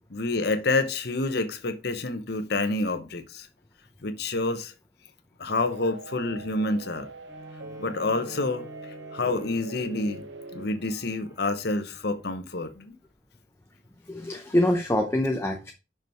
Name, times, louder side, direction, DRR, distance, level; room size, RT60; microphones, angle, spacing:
voice 1, 0.1-3.5 4.0-4.7 5.4-7.1 7.8-8.7 9.1-10.3 10.5-12.9, left 2 dB, 60° left, 0.9 m, -28 dB
sound 1, 5.5-10.7, right 2 dB, 70° right, 0.6 m, -42 dB
Bowed string instrument, 7.3-12.9 13.5-13.6, left 1 dB, 15° right, 1.4 m, -49 dB
voice 2, 14.1-15.7, left 1 dB, 15° left, 0.7 m, -25 dB
6.0 x 5.5 x 4.5 m
head